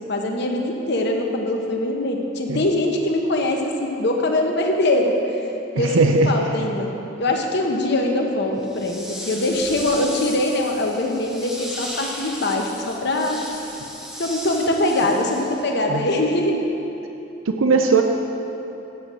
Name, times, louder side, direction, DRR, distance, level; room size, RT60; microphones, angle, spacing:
voice 1, 0.0-5.2 5.7-6.9 7.2-13.4 14.2-16.5, left 1 dB, 55° left, 2 dB, 1.0 m, -22 dB
voice 2, 5.8-6.4 15.9-16.0 17.5-18.0, right 4 dB, 90° right, 4 dB, 0.5 m, -18 dB
sound 1, 8.6-15.9, equal, ahead, 0.7 m, -36 dB
7.9 x 7.2 x 6.1 m, 3.0 s
head